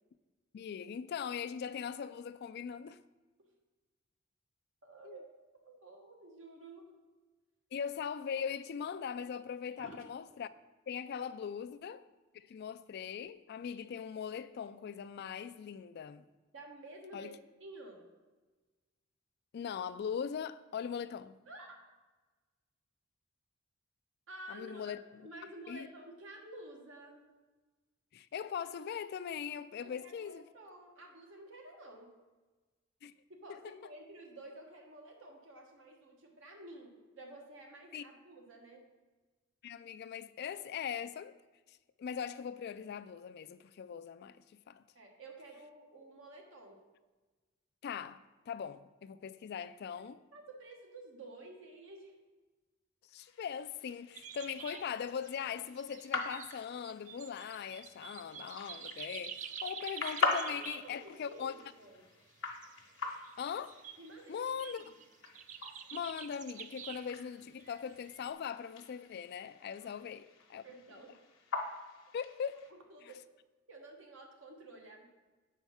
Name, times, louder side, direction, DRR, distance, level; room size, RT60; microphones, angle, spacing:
voice 1, 0.5-3.0 5.0-5.2 7.7-10.5 10.9-12.0 12.3-16.2 17.1-17.3 19.5-21.4 24.5-25.0 25.7-25.9 28.1-30.5 33.0-33.1 33.5-33.6 37.9-38.0 39.6-41.4 41.7-44.8 47.8-48.2 48.5-50.2 53.1-61.5 63.4-63.8 64.3-64.8 65.9-70.6 72.1-72.6 73.0-73.1, left 7 dB, 55° left, 0.3 m, -40 dB
voice 2, 4.8-6.9 9.8-10.1 16.5-17.3 17.6-18.1 21.5-21.8 24.3-27.2 29.8-32.1 33.3-38.8 44.9-46.8 50.3-52.1 60.6-62.1 64.0-64.4 64.7-64.9 69.8-69.9 70.6-71.2 72.7-73.3 73.7-75.0, right 2 dB, 70° right, 1.3 m, -51 dB
sound 1, 53.2-72.7, left 4 dB, 75° left, 1.1 m, -43 dB
sound 2, 54.1-55.5 55.8-61.4 61.7-61.8 62.5-64.1 64.5-67.2 67.6-68.3, right 8 dB, 40° right, 0.3 m, -48 dB
7.2 x 4.6 x 5.5 m
head